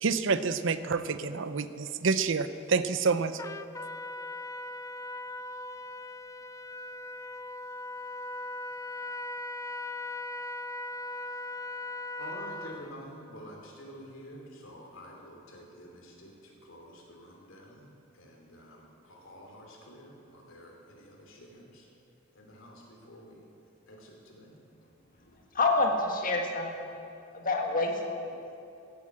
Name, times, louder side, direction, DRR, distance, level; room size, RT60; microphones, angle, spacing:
voice 1, 0.0-3.4, right 4 dB, 70° right, 12 dB, 0.6 m, -28 dB
Trumpet, 3.4-12.9, left 2 dB, 15° left, 0.4 m, -39 dB
voice 2, 12.2-21.9 22.3-23.5 23.9-24.6 27.3-27.4, equal, 75° left, 0 dB, 3.1 m, -49 dB
voice 3, 25.5-26.9 27.3-28.0 28.3-28.4, left 2 dB, 45° left, 2 dB, 1.7 m, -27 dB
16.0 x 8.4 x 7.7 m, 2.6 s
head